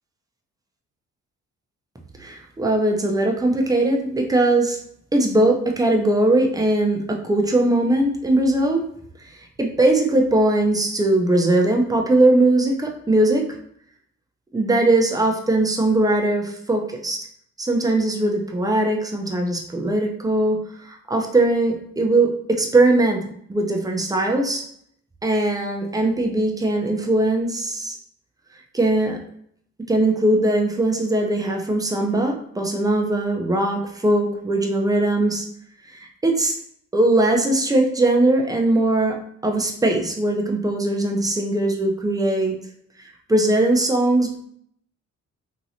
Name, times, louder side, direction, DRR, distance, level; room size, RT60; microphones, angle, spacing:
voice 1, 2.2-4.8 5.1-8.8 9.6-13.5 14.5-17.3 17.6-23.2 23.5-24.6 25.2-28.0 28.7-29.2 29.9-35.4 35.9-36.6 36.9-42.5 43.0-44.4, right 2 dB, 10° right, 2 dB, 0.6 m, -20 dB
2.9 x 2.8 x 2.7 m, 0.67 s
cardioid pair, 90°, 30 cm